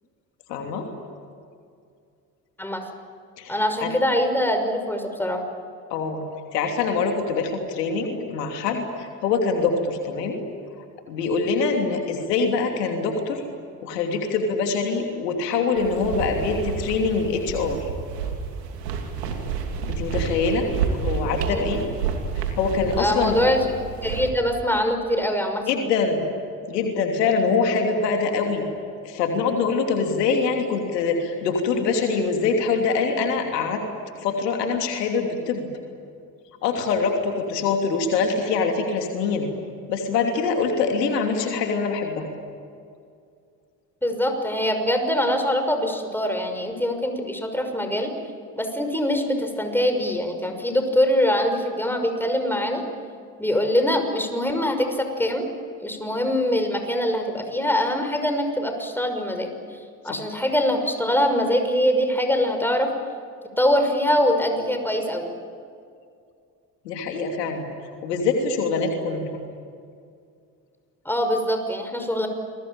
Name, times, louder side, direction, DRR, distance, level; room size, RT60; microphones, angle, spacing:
voice 1, 0.5-0.9 3.4-3.5 3.8-3.9 5.9-6.3 6.5-10.4 11.1-13.4 13.8-17.9 19.9-21.8 22.3-23.4 25.7-26.2 26.7-28.6 29.0-33.8 34.2-35.7 36.6-39.5 39.9-42.3 60.1-60.2 66.8-67.7 68.0-69.2, left 4 dB, 80° left, 3 dB, 3.1 m, -24 dB
voice 2, 3.5-5.4 21.5-21.6 23.0-23.7 24.0-25.6 44.0-48.1 48.6-52.8 53.4-55.5 55.8-59.5 60.0-62.9 63.6-65.3 71.0-72.3, equal, 5° left, 5 dB, 5.9 m, -23 dB
sound 1, 15.8-24.3, right 6 dB, 85° right, 3.0 m, -29 dB
28.0 x 21.5 x 8.9 m, 2.3 s
hypercardioid pair, 55°, 48 cm